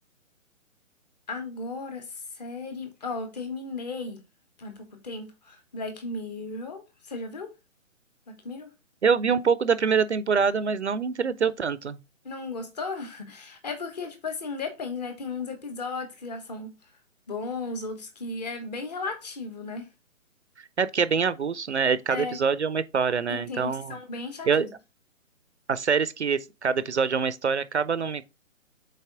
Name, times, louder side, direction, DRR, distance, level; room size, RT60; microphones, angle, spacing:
voice 1, 1.3-4.2 4.6-7.5 8.3-8.7 12.2-16.7 17.3-19.9 22.1-22.4 23.3-24.7, left 3 dB, 30° left, 1.2 m, -35 dB
voice 2, 9.0-12.0 20.6-23.9 24.5-24.7 25.7-28.3, right 6 dB, 55° right, 0.5 m, -25 dB
6.6 x 4.1 x 3.6 m
figure-of-eight pair, 140°, 40 cm